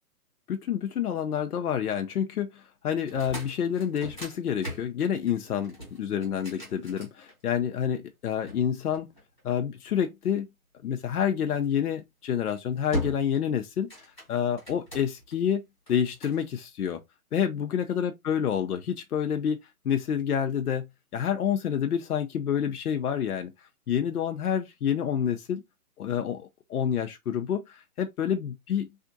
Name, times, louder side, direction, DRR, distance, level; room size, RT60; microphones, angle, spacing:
voice 1, 0.5-9.1 9.4-10.5 10.8-13.9 14.3-15.6 15.9-17.0 17.3-19.6 19.8-20.8 21.1-23.5 23.9-25.6 26.0-28.9, left 8 dB, 85° left, 0.7 m, -28 dB
sound 1, 3.0-7.7 8.5-9.8 11.5-11.8 12.3-12.6 12.9-13.5 13.7-15.3 15.9-16.4, left 1 dB, 5° left, 0.9 m, -39 dB
3.5 x 2.5 x 2.6 m
hypercardioid pair, 170°, 44 cm